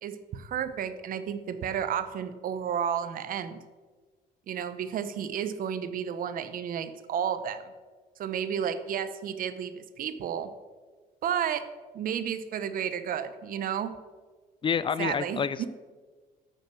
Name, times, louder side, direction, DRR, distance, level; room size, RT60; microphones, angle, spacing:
voice 1, 0.0-3.6 4.5-7.7 8.2-10.5 11.2-11.6 11.9-14.0 15.0-15.7, right 8 dB, 55° right, 11 dB, 0.8 m, -32 dB
voice 2, 14.6-15.7, left 6 dB, 30° left, 16 dB, 0.4 m, -28 dB
9.2 x 6.5 x 6.2 m, 1.4 s
cardioid pair, 110°, 17 cm